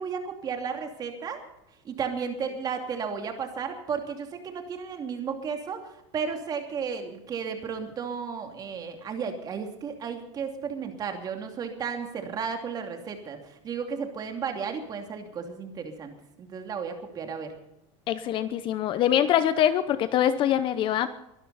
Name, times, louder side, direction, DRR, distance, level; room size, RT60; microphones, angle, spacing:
voice 1, 0.0-1.4 1.8-5.8 6.1-13.4 13.6-16.1 16.4-17.5, right 6 dB, 25° right, 5 dB, 2.6 m, -33 dB
voice 2, 18.1-21.1, left 10 dB, 35° left, 13 dB, 0.8 m, -24 dB
23.0 x 12.5 x 4.2 m, 0.87 s
supercardioid pair, 155°, 15 cm